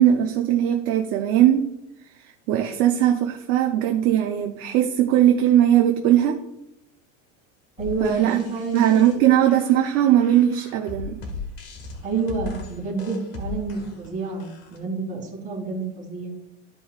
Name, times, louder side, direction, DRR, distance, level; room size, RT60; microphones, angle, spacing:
voice 1, 0.0-1.7 2.2-6.4 8.0-8.4 8.7-11.2, right 11 dB, 40° right, 4 dB, 0.6 m, -19 dB
sound 1, 7.8-14.8, left 3 dB, 40° left, 1.5 m, -38 dB
voice 2, 7.8-9.2 12.0-16.3, right 4 dB, 20° right, -3 dB, 2.6 m, -29 dB
13.5 x 5.2 x 2.4 m, 0.85 s
cardioid pair, 175°, 36 cm